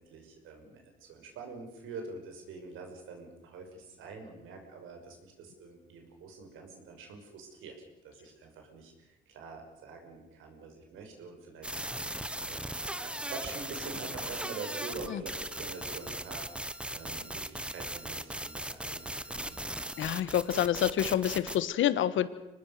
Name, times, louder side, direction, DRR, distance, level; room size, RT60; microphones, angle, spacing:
voice 1, 0.0-7.7 8.0-8.9 9.3-12.6 13.0-19.6, right 4 dB, 85° right, 3 dB, 5.9 m, -46 dB
sound 1, 11.6-21.6, right 1 dB, 5° right, 1.1 m, -38 dB
voice 2, 20.0-22.3, left 11 dB, 80° left, 14 dB, 1.3 m, -28 dB
25.5 x 19.0 x 6.7 m, 0.97 s
cardioid pair, 90°, 20 cm